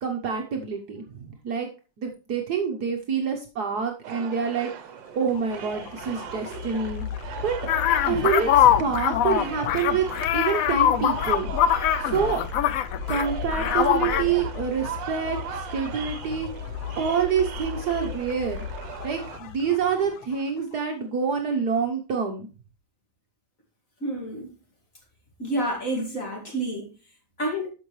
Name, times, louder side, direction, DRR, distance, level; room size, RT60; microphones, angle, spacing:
voice 1, 0.0-1.7 2.0-7.1 7.4-7.6 8.1-10.1 10.3-11.5 12.0-12.4 13.1-16.5 17.0-18.7 19.0-22.5, right 6 dB, 60° right, 1.5 m, -27 dB
sound 1, 4.0-19.4, right 9 dB, 75° right, 1.5 m, -39 dB
sound 2, 5.1-20.7, left 7 dB, 85° left, 1.6 m, -36 dB
sound 3, 7.7-13.3 13.5-14.2, left 10 dB, 70° left, 0.8 m, -22 dB
voice 2, 24.0-24.5 25.4-26.9 27.4-27.7, right 1 dB, 45° left, 2.6 m, -29 dB
12.5 x 5.4 x 3.1 m
omnidirectional pair, 2.0 m